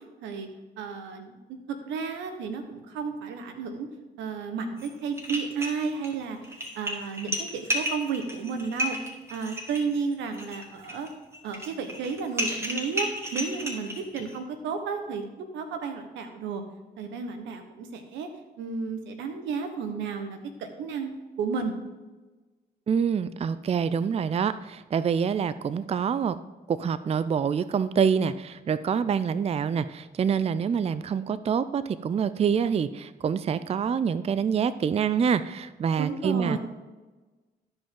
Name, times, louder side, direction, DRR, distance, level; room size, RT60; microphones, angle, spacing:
voice 1, 0.8-1.4 1.7-3.9 4.2-9.0 9.3-11.1 11.4-15.2 15.5-16.6 17.0-18.3 18.6-21.1 21.4-21.7 36.0-36.6, right 5 dB, 90° right, 7 dB, 1.0 m, -32 dB
sound 1, 4.8-4.9 5.2-6.1 6.4-14.4, equal, 15° right, 2.1 m, -32 dB
voice 2, 22.9-26.4 26.7-36.6, right 7 dB, 35° right, 15 dB, 0.4 m, -26 dB
13.0 x 5.2 x 3.7 m, 1.2 s
supercardioid pair, 60°, 19 cm